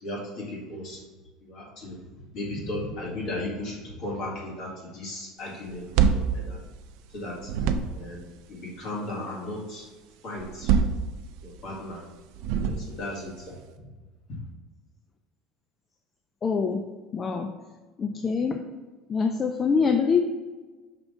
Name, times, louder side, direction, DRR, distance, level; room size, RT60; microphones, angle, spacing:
voice 1, 0.0-1.0 1.4-2.0 2.3-5.8 6.1-6.6 7.1-7.5 7.9-8.2 8.5-9.9 10.2-11.0 11.4-12.0 12.6-13.9 14.3-14.4, left 1 dB, 45° left, -3 dB, 1.9 m, -36 dB
sound 1, 5.7-7.1 7.4-8.2 10.4-11.6 12.3-13.2, right 6 dB, 65° right, 0.4 m, -25 dB
voice 2, 16.4-16.8 17.1-17.5 18.0-18.6 19.1-20.2, left 5 dB, 20° left, 5 dB, 0.3 m, -24 dB
5.8 x 3.5 x 5.3 m, 1.3 s
cardioid pair, 165°, 0 cm